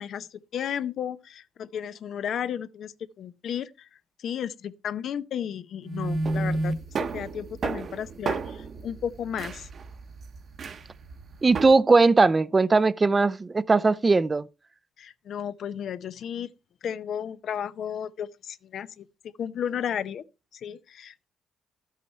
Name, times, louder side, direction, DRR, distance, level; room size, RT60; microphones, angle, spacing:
voice 1, 0.0-3.9 4.2-6.7 7.1-9.7 15.0-16.5 16.8-19.1 19.4-20.2 20.5-21.3, left 9 dB, 65° left, 0.6 m, -33 dB
sound 1, 5.8-11.7, right 3 dB, 50° right, 0.9 m, -31 dB
voice 2, 11.4-14.5, right 3 dB, 25° right, 0.5 m, -19 dB
12.0 x 8.3 x 4.3 m
cardioid pair, 90°, 0 cm